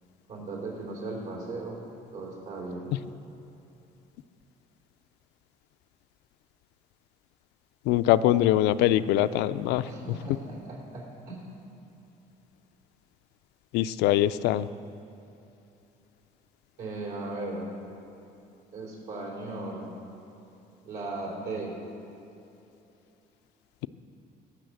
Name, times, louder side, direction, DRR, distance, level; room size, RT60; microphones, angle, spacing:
voice 1, 0.3-1.8 2.1-2.9 9.9-11.4 16.8-17.7 18.7-19.9 20.9-21.8, right 2 dB, 75° right, -2 dB, 3.5 m, -37 dB
voice 2, 7.9-9.8 13.7-14.7, left 13 dB, 90° left, 13 dB, 0.4 m, -23 dB
18.0 x 6.3 x 7.7 m, 2.8 s
cardioid pair, 110°, 17 cm